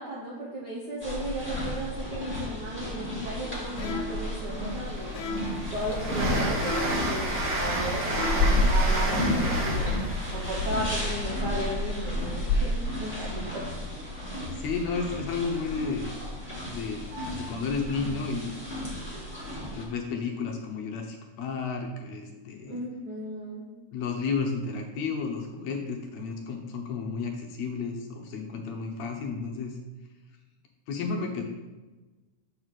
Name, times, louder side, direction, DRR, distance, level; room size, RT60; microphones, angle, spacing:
voice 1, 0.0-5.1 5.7-9.8 10.3-12.7 13.0-13.7 22.7-23.6, right 1 dB, 85° right, -5 dB, 0.9 m, -35 dB
sound 1, 1.0-19.8, left 1 dB, 5° right, 1.4 m, -31 dB
sound 2, 3.8-4.3 5.1-5.6 6.6-7.1 8.0-8.6, left 2 dB, 85° left, 2.3 m, -35 dB
Train, 4.0-4.1 4.5-12.2, right 1 dB, 55° right, 1.3 m, -31 dB
voice 2, 14.6-16.1 16.7-18.5 19.6-22.8 23.9-29.8 30.9-31.4, left 4 dB, 70° left, 2 dB, 1.8 m, -32 dB
7.1 x 3.9 x 6.3 m, 1.2 s
omnidirectional pair, 3.7 m